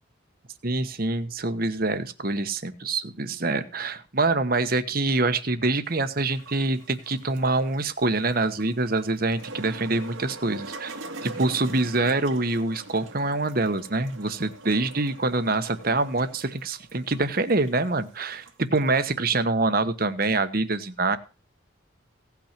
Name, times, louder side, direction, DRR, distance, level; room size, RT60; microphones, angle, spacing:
voice 1, 0.6-21.2, right 2 dB, 45° right, 10 dB, 1.2 m, -25 dB
sound 1, 5.9-18.9, right 2 dB, 85° right, 1.9 m, -43 dB
17.0 x 5.9 x 5.9 m, 0.33 s
head